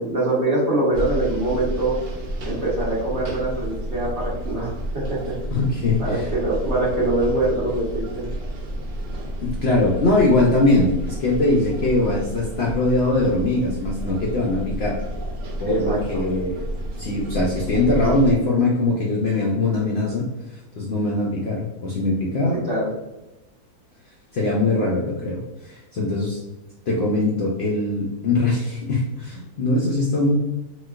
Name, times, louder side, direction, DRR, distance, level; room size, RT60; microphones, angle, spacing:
voice 1, 0.0-2.0 2.5-5.3 6.0-8.3 15.6-16.3 22.6-22.9, right 2 dB, 50° right, -7 dB, 1.0 m, -24 dB
sound 1, 0.9-18.3, right 1 dB, 90° right, 0.4 m, -31 dB
voice 2, 5.5-6.3 9.4-15.0 15.6-16.6 17.0-22.6 24.3-26.4 26.9-30.3, left 2 dB, 70° left, -3 dB, 0.6 m, -22 dB
4.0 x 2.2 x 2.3 m, 0.99 s
omnidirectional pair, 1.7 m